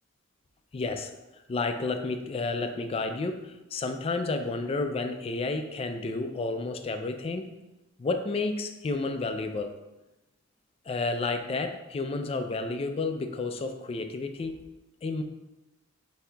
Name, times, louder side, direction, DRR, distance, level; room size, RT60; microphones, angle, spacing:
voice 1, 0.7-7.5 8.0-9.7 10.9-14.6 15.0-15.2, left 3 dB, 30° left, 7 dB, 0.3 m, -31 dB
8.0 x 2.7 x 2.2 m, 1.0 s
head